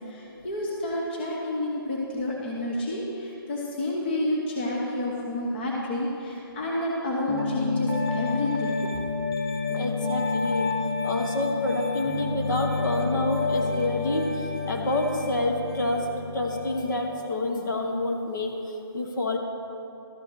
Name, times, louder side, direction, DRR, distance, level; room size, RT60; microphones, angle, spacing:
voice 1, 0.0-8.9, left 1 dB, 25° left, -2 dB, 0.9 m, -29 dB
Piano, 7.3-17.0, left 3 dB, 80° left, 2.2 m, -29 dB
voice 2, 9.7-10.7 11.0-16.1 16.3-19.4, left 2 dB, 50° left, 2 dB, 1.2 m, -28 dB
12.5 x 5.3 x 6.2 m, 2.9 s
hypercardioid pair, 170°, 13 cm